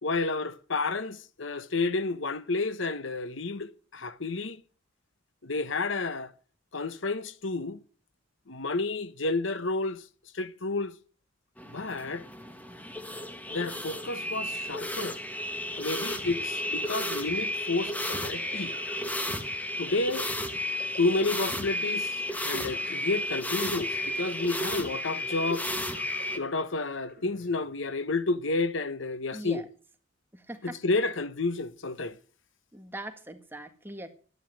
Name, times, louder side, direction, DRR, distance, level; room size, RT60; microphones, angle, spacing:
voice 1, 0.0-4.6 5.4-6.3 6.7-7.8 8.5-10.0 10.3-10.9 11.7-12.2 13.5-15.2 15.8-18.8 19.8-20.3 21.0-25.7 26.4-29.6 30.6-32.2, left 3 dB, 70° left, 1.1 m, -30 dB
sound 1, 11.6-26.4, left 1 dB, 10° left, 1.6 m, -33 dB
sound 2, 17.8-28.4, left 2 dB, 55° left, 7.6 m, -51 dB
voice 2, 29.3-29.6 30.3-30.8 32.7-34.1, right 1 dB, 10° right, 1.8 m, -41 dB
12.0 x 10.5 x 9.1 m
head